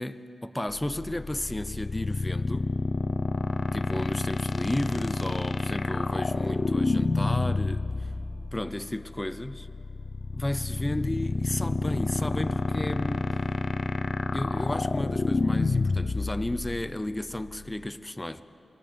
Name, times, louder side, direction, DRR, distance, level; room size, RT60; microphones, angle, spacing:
voice 1, 0.0-2.7 3.7-8.1 8.5-9.7 10.3-13.3 14.3-18.4, left 1 dB, 15° left, 0.7 m, -33 dB
sound 1, 0.7-17.9, left 3 dB, 50° left, 0.7 m, -29 dB
Singing / Musical instrument, 4.4-13.9, right 1 dB, 30° right, 4.6 m, -54 dB
28.5 x 22.0 x 5.3 m
wide cardioid pair, 95°, 0 cm